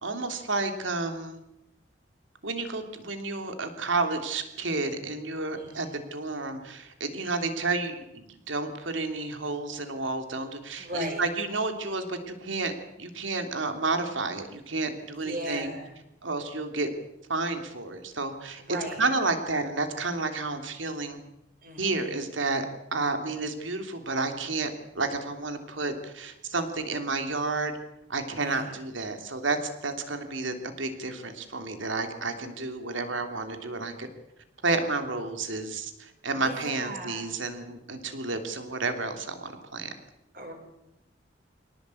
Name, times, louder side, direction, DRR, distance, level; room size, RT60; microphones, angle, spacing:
voice 1, 0.0-1.4 2.4-15.7 16.2-16.9 17.3-18.6 19.0-21.2 21.8-27.7 28.1-34.1 34.6-39.9, right 3 dB, 85° right, 7 dB, 3.1 m, -31 dB
voice 2, 5.5-6.0 10.8-11.2 15.1-15.9 18.6-19.0 21.6-22.2 28.3-28.7 36.3-37.3 40.3-40.5, equal, 45° right, 3 dB, 6.4 m, -37 dB
24.5 x 18.5 x 8.5 m, 0.89 s
head